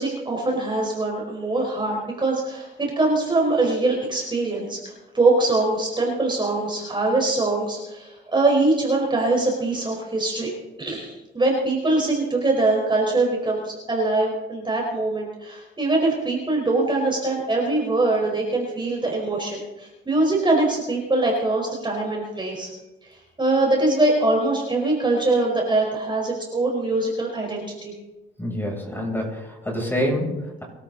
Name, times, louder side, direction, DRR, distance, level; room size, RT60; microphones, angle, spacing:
voice 1, 0.0-10.5 10.8-22.7 23.0-27.9, right 2 dB, 25° right, -1 dB, 4.8 m, -23 dB
voice 2, 28.4-30.6, equal, 10° left, -1 dB, 7.7 m, -27 dB
24.5 x 13.0 x 4.1 m, 1.0 s
cardioid pair, 90°, 20 cm